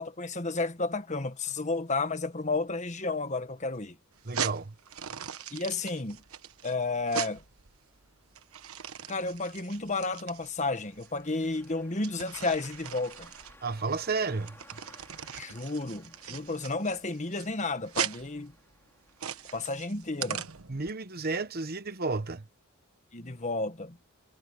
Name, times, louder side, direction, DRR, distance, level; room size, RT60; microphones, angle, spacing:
voice 1, 0.0-4.0 5.5-6.2 6.6-7.4 9.1-13.3 15.3-18.5 19.5-20.4 23.1-24.0, left 3 dB, 35° left, 1.5 m, -32 dB
sound 1, 4.1-20.9, right 8 dB, 80° right, 1.2 m, -40 dB
voice 2, 4.2-4.7 13.6-14.6 20.7-22.4, right 3 dB, 45° right, 1.1 m, -32 dB
sound 2, 10.6-20.4, left 2 dB, 10° left, 5.7 m, -59 dB
head